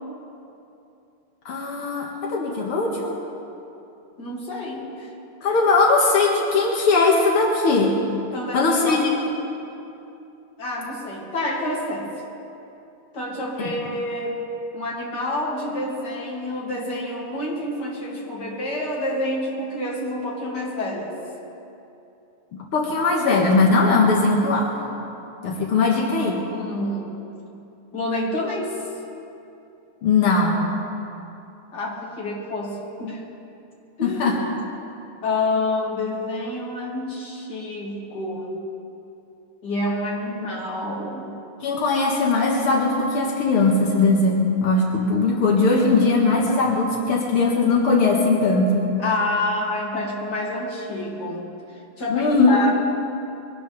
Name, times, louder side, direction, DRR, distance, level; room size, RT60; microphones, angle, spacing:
voice 1, 1.5-3.2 5.4-8.0 8.5-9.1 13.6-13.7 22.5-24.8 25.4-26.4 30.0-30.6 34.0-34.4 41.6-48.9 52.1-52.6, left 3 dB, 85° left, -1 dB, 2.4 m, -19 dB
voice 2, 4.2-5.1 8.3-9.1 10.6-12.1 13.1-14.4 14.7-21.2 25.7-27.2 27.9-28.8 31.7-33.2 34.0-34.4 35.2-38.6 39.6-41.4 49.0-51.5 52.0-52.7, left 1 dB, 50° left, -4 dB, 3.1 m, -28 dB
22.5 x 19.0 x 3.4 m, 2.8 s
omnidirectional pair, 2.3 m